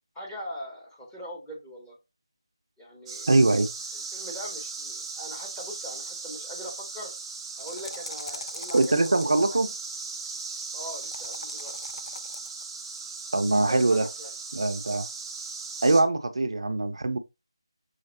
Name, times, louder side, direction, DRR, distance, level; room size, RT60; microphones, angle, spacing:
voice 1, 0.1-2.0 2.8-3.3 3.9-7.1 7.6-9.6 10.7-11.7 13.5-14.3, equal, 10° left, 0.9 m, -41 dB
sound 1, 3.1-16.0, right 4 dB, 5° right, 0.4 m, -38 dB
voice 2, 3.3-3.7 8.7-9.7 13.3-14.1 14.5-15.1 15.8-17.2, right 2 dB, 70° right, 0.6 m, -22 dB
sound 2, 7.5-9.3 10.9-12.6, left 2 dB, 75° left, 0.4 m, -42 dB
5.7 x 3.1 x 2.7 m
figure-of-eight pair, 160°, 3 cm